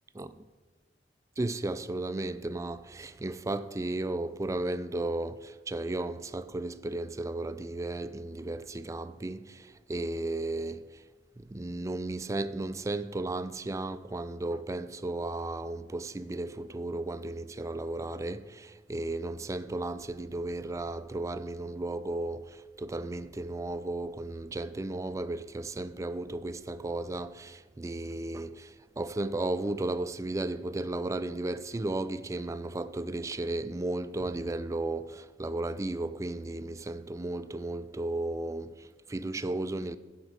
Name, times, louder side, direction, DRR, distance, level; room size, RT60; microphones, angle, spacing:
voice 1, 1.4-11.1 11.4-40.0, right 2 dB, 20° right, 0.3 m, -34 dB
11.5 x 5.1 x 6.3 m
head